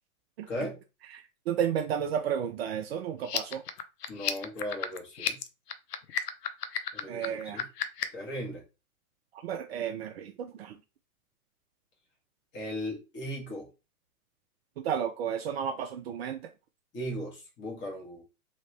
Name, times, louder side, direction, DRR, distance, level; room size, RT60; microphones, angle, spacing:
voice 1, 1.1-3.6 7.1-7.6 9.4-10.8 14.8-16.4, right 8 dB, 45° right, 0.4 m, -32 dB
sound 1, 3.2-8.2, left 9 dB, 90° left, 0.7 m, -33 dB
voice 2, 4.1-5.4 6.9-7.7 8.1-8.6 12.5-13.7 16.9-18.2, equal, 25° left, 1.4 m, -37 dB
3.2 x 2.8 x 3.1 m
hypercardioid pair, 125°, 46 cm